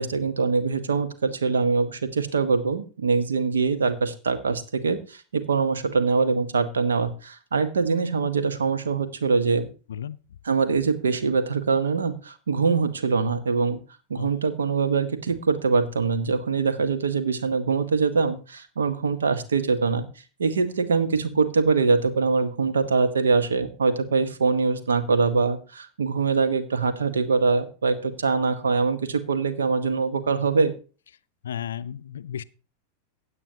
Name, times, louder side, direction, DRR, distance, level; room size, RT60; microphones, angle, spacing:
voice 1, 0.0-9.7 10.4-13.8 14.1-20.1 20.4-30.7, right 4 dB, 70° right, 1.1 m, -23 dB
voice 2, 31.4-32.4, left 9 dB, 65° left, 0.4 m, -33 dB
16.0 x 8.6 x 2.8 m
figure-of-eight pair, 90°, 0 cm